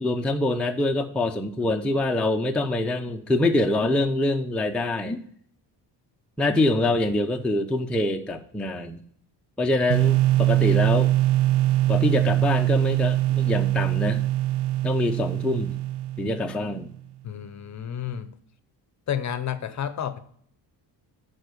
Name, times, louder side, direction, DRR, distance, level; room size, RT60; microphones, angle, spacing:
voice 1, 0.0-5.2 6.4-9.0 9.6-11.1 11.9-14.2 14.8-15.8 16.2-16.9, left 2 dB, ahead, 2 dB, 0.5 m, -25 dB
sound 1, 9.9-16.7, right 15 dB, 65° right, 0.7 m, -22 dB
voice 2, 17.2-18.3 19.1-20.2, left 9 dB, 40° left, 13 dB, 0.7 m, -30 dB
11.0 x 4.3 x 6.7 m, 0.63 s
cardioid pair, 135°, 44 cm